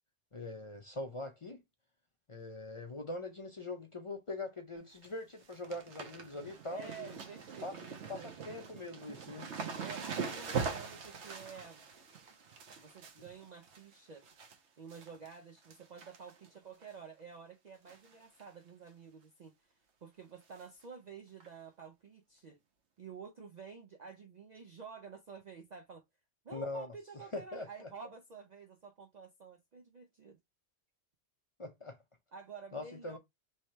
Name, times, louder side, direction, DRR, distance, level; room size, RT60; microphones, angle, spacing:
voice 1, 0.3-1.6 2.3-7.2 7.6-7.7 8.1-9.5 26.5-26.9 27.3-27.7 31.6-32.0 32.7-33.2, left 2 dB, 35° left, 0.5 m, -42 dB
sound 1, 4.8-5.1 5.3-14.6 14.9-15.3 15.6-16.5 16.8-16.9 17.9-18.1 18.4-18.5 18.9-19.0 20.6-20.7 21.4-21.5, right 5 dB, 75° right, 1.0 m, -42 dB
voice 2, 6.7-8.3 9.8-11.9 12.8-14.2 14.8-22.6 23.0-26.0 26.4-30.4 32.3-33.2, right 6 dB, 60° right, 0.4 m, -50 dB
3.2 x 2.7 x 4.2 m
omnidirectional pair, 1.2 m